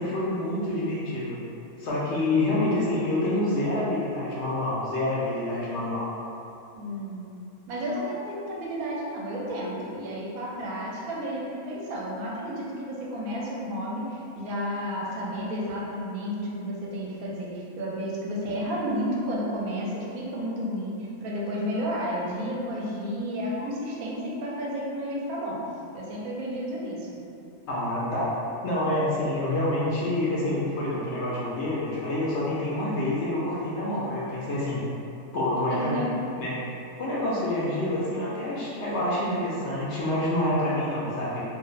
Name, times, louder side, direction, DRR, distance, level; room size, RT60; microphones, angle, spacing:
voice 1, 0.0-1.4 1.8-6.1 27.7-28.3 28.6-34.8 35.3-36.0 36.4-36.6 37.0-41.4, left 1 dB, 65° left, -7 dB, 0.8 m, -27 dB
voice 2, 6.7-7.3 7.7-25.6 25.9-27.2 35.7-36.4, equal, 80° right, -4 dB, 1.1 m, -32 dB
2.6 x 2.1 x 3.9 m, 2.7 s
omnidirectional pair, 1.5 m